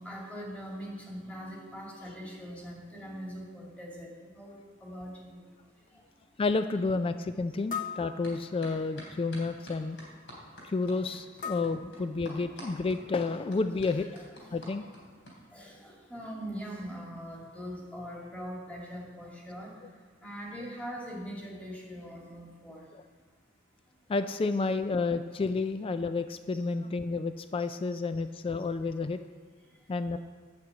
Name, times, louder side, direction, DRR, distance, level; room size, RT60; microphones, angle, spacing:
voice 1, 0.0-4.5 4.8-5.4 12.8-12.9 14.0-14.6 15.5-19.7 20.2-22.9 27.9-28.0, equal, 5° left, -3 dB, 2.3 m, -42 dB
sound 1, 4.4-4.5 5.1-5.2 5.8-5.9 7.7-8.9 11.4-12.7, left 7 dB, 45° left, 0.8 m, -40 dB
voice 2, 6.4-10.0 10.6-14.1 14.5-14.8 22.9-23.0 24.1-29.2 29.9-30.2, left 3 dB, 30° left, 10 dB, 0.3 m, -30 dB
sound 2, 8.2-8.3 8.6-15.3, equal, 65° left, 3.3 m, -47 dB
11.5 x 6.2 x 7.9 m, 1.5 s
head